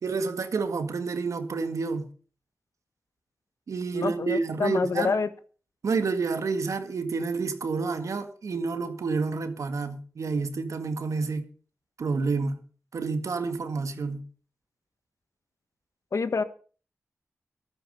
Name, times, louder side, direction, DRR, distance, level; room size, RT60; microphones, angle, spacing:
voice 1, 0.0-2.1 3.7-5.2 5.8-11.5 12.0-12.6 12.9-14.2, right 4 dB, 85° right, 1.9 m, -29 dB
voice 2, 3.9-5.3 16.1-16.4, left 4 dB, 75° left, 1.3 m, -27 dB
13.5 x 13.0 x 5.4 m
wide cardioid pair, 70°, 5 cm